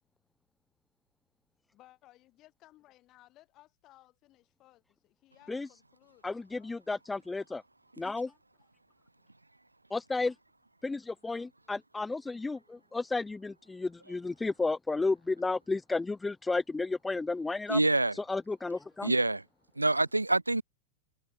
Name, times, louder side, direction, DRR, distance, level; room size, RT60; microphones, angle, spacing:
voice 1, 1.7-6.8, left 16 dB, 35° left, 7.2 m, -61 dB
voice 2, 6.2-7.6 8.0-8.3 9.9-10.3 10.8-17.8 18.1-19.1, left 3 dB, 10° left, 0.6 m, -32 dB
voice 3, 17.7-18.2 19.0-19.4 19.8-20.6, right 2 dB, 85° right, 0.3 m, -26 dB
figure-of-eight pair, 90°, 0 cm